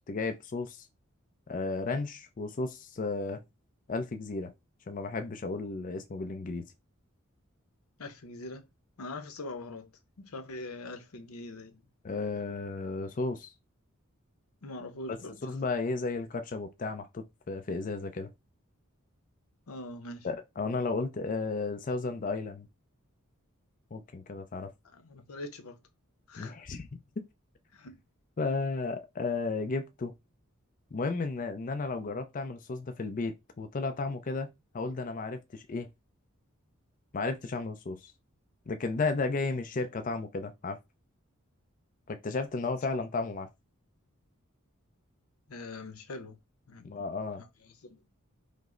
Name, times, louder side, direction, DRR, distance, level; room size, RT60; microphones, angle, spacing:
voice 1, 0.1-0.9 1.5-3.4 3.9-4.5 4.9-6.6 12.0-13.5 15.1-15.2 15.4-18.3 20.2-22.7 23.9-24.7 26.4-26.9 27.2-27.3 28.4-30.1 30.9-34.5 34.7-35.9 37.1-38.1 38.7-40.8 42.1-43.5 46.8-47.4, left 3 dB, 40° left, 0.4 m, -33 dB
voice 2, 8.0-8.6 9.0-9.9 10.2-11.8 14.6-15.4 19.7-20.3 24.9-25.8 26.3-26.6 27.7-27.9 45.5-46.4 46.7-47.0 47.4-48.0, left 2 dB, 85° left, 0.7 m, -43 dB
5.2 x 2.0 x 3.7 m
head